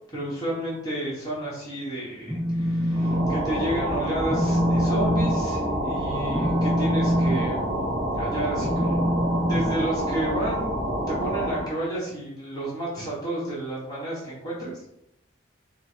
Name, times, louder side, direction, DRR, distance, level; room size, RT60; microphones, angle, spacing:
voice 1, 0.1-7.9 8.1-9.1 9.5-14.8, right 1 dB, 20° left, -7 dB, 1.2 m, -31 dB
Telephone, 2.1-3.3 3.6-3.9 4.3-10.4, equal, 5° right, 0.3 m, -25 dB
sound 1, 2.9-11.8, right 1 dB, 40° right, 1.1 m, -28 dB
3.7 x 2.3 x 4.4 m, 0.78 s
head